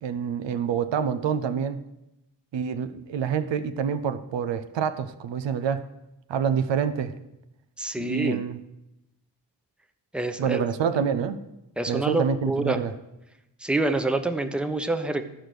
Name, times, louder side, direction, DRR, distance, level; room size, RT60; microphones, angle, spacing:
voice 1, 0.0-1.8 2.5-5.8 6.3-7.1 8.0-8.6 10.4-11.4 11.9-12.9, right 7 dB, 75° right, 10 dB, 0.6 m, -27 dB
voice 2, 7.8-8.4 10.1-10.6 11.8-12.8 13.6-15.2, right 2 dB, ahead, 7 dB, 0.8 m, -27 dB
11.5 x 4.9 x 6.2 m, 0.90 s
supercardioid pair, 40°, 44 cm